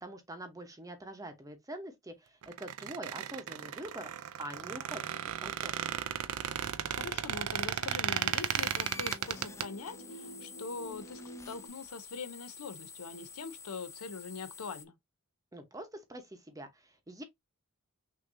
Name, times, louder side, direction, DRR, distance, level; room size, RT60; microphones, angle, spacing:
voice 1, 0.0-4.1 4.4-5.7 15.5-17.2, right 1 dB, 15° right, 0.9 m, -45 dB
Squeak, 2.4-9.6, right 9 dB, 70° right, 0.4 m, -35 dB
voice 2, 6.8-15.0, left 4 dB, 80° left, 0.6 m, -43 dB
sound 1, 7.7-11.7, right 1 dB, 45° left, 1.0 m, -51 dB
sound 2, 8.2-14.9, left 4 dB, 15° left, 0.4 m, -49 dB
6.2 x 2.7 x 2.6 m
head